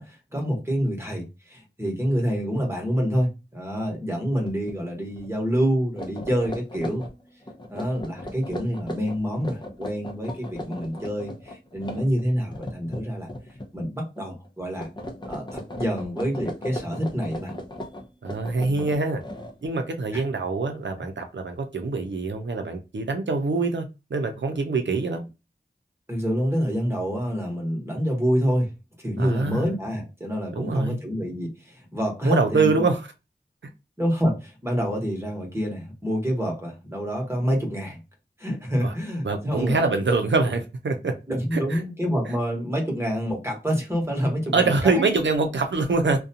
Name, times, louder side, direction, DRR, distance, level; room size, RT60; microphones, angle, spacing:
voice 1, 0.0-7.1 7.7-13.3 13.7-14.9 15.2-17.5 18.6-18.8 20.1-20.2 26.1-28.7 29.0-32.8 34.0-38.0 38.4-39.8 41.3-45.1, equal, 15° right, 1.1 m, -27 dB
sound 1, 4.4-4.8 5.1-5.3 5.8-13.9 14.2-14.5 14.8-19.9, left 1 dB, 25° left, 0.6 m, -37 dB
voice 2, 18.2-19.2 19.6-25.2 29.2-29.6 30.5-31.0 32.2-33.0 38.8-38.9 39.2-41.1 41.5-41.8 44.5-46.2, right 3 dB, 90° right, 0.5 m, -24 dB
2.5 x 2.2 x 2.7 m
wide cardioid pair, 50°, 18 cm